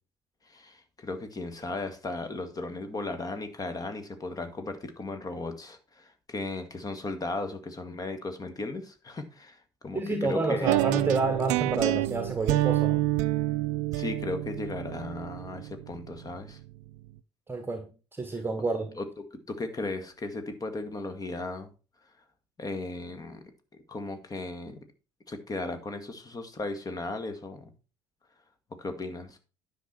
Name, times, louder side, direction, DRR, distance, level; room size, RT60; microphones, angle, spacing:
voice 1, 0.4-10.8 13.9-16.6 19.0-19.1 19.5-21.7 22.6-23.4 23.9-24.8 25.3-27.7 28.8-29.4, left 2 dB, 25° left, 1.8 m, -36 dB
voice 2, 9.9-13.1 17.5-19.0, right 3 dB, 15° right, 1.3 m, -29 dB
sound 1, 10.6-16.7, right 17 dB, 60° right, 0.5 m, -28 dB
10.0 x 5.9 x 4.4 m
figure-of-eight pair, 55°, 14 cm